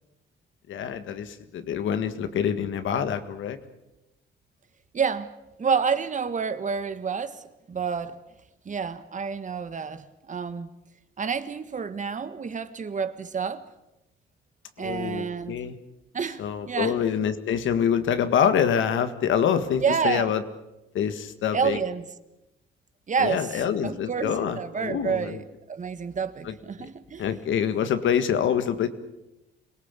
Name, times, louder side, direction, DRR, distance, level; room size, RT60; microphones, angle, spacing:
voice 1, 0.7-3.6 14.8-15.8 16.4-20.4 20.9-21.8 23.2-25.4 26.5-26.6 27.2-28.9, left 8 dB, 75° left, 1.8 m, -26 dB
voice 2, 4.9-5.3 5.6-8.2 8.6-10.7 11.2-13.6 14.8-15.6 16.1-17.0 19.8-20.3 21.5-22.1 23.1-25.4 25.7-27.2, right 6 dB, 40° right, 1.5 m, -29 dB
26.0 x 18.0 x 8.3 m
cardioid pair, 90°, 20 cm